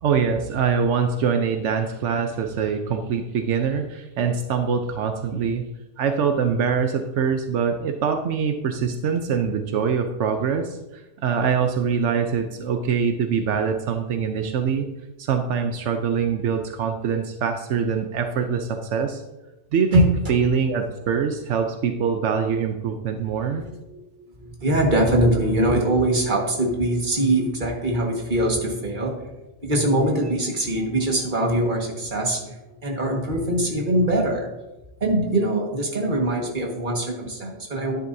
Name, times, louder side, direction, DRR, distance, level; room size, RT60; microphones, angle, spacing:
voice 1, 0.0-5.6 6.0-14.9 15.2-19.2 19.7-23.6, right 6 dB, 85° right, 5 dB, 1.0 m, -24 dB
voice 2, 24.4-29.3 29.6-32.6 32.8-34.5 35.0-38.0, right 1 dB, 45° right, 0 dB, 1.9 m, -22 dB
11.5 x 10.0 x 2.7 m, 1.0 s
omnidirectional pair, 1.2 m